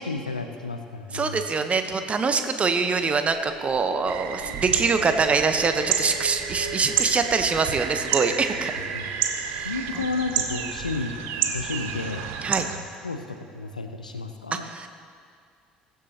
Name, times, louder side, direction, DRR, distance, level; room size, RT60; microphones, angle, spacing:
voice 1, 0.0-1.4 8.9-12.3 13.0-14.7, left 3 dB, 90° left, 7 dB, 0.6 m, -32 dB
voice 2, 1.1-8.7 9.5-9.7 12.4-12.7 14.5-14.9, right 4 dB, 30° right, 8 dB, 1.0 m, -24 dB
sound 1, 2.8-10.8, right 3 dB, 85° right, 2.1 m, -42 dB
sound 2, 4.1-12.8, right 8 dB, 60° right, 0.8 m, -30 dB
21.5 x 7.4 x 2.9 m, 2.2 s
figure-of-eight pair, 55°, 4 cm